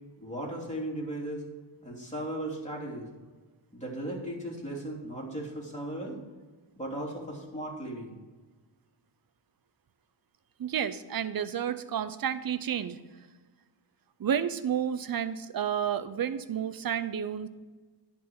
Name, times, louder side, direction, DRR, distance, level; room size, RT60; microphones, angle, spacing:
voice 1, 0.2-1.4 1.8-3.1 3.7-6.2 6.8-8.1, right 1 dB, 15° left, -3 dB, 3.1 m, -36 dB
voice 2, 10.6-13.0 14.2-17.5, right 8 dB, 50° right, 12 dB, 0.7 m, -31 dB
10.5 x 4.2 x 7.7 m, 1.3 s
cardioid pair, 85°, 45 cm